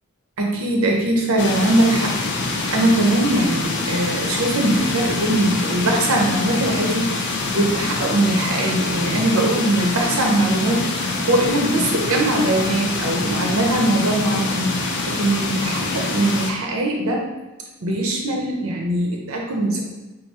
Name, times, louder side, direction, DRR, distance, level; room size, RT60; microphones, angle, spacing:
voice 1, 0.4-17.3 17.8-19.8, right 1 dB, 70° right, 0 dB, 0.7 m, -21 dB
sound 1, 1.4-16.5, left 3 dB, 55° left, 0.5 m, -25 dB
4.6 x 2.6 x 2.9 m, 1.1 s
head